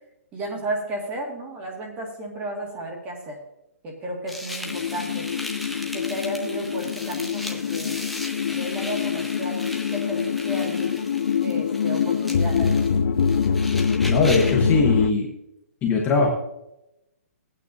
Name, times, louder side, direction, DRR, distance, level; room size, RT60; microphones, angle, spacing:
voice 1, 0.3-3.4 3.8-5.3 5.9-8.0 8.5-11.0 11.4-12.8, right 1 dB, 15° right, 0 dB, 1.9 m, -33 dB
sound 1, 4.3-14.7, left 1 dB, ahead, 0.7 m, -37 dB
sound 2, 4.6-15.1, left 6 dB, 75° left, 0.5 m, -24 dB
voice 2, 14.1-15.3 15.8-16.3, left 4 dB, 15° left, 0 dB, 1.0 m, -20 dB
16.5 x 8.8 x 2.7 m, 0.87 s
hypercardioid pair, 160°, 8 cm